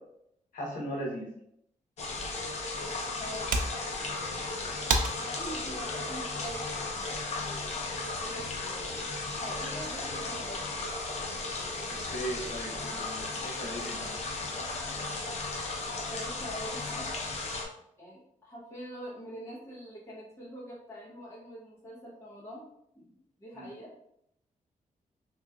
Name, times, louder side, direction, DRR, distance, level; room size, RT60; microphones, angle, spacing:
voice 1, 0.5-1.3 5.7-6.1 11.9-14.1 23.5-23.7, equal, 85° left, -4 dB, 1.1 m, -38 dB
sound 1, 2.0-17.7, left 3 dB, 55° left, 0.6 m, -35 dB
sound 2, 2.3-7.4, right 3 dB, 90° right, 0.4 m, -36 dB
voice 2, 3.2-3.5 5.1-7.8 8.2-8.9 9.3-10.7 16.1-17.1 18.0-22.6 22.9-23.9, equal, 20° left, -6 dB, 1.0 m, -44 dB
3.0 x 3.0 x 2.3 m, 0.74 s
wide cardioid pair, 170°, 14 cm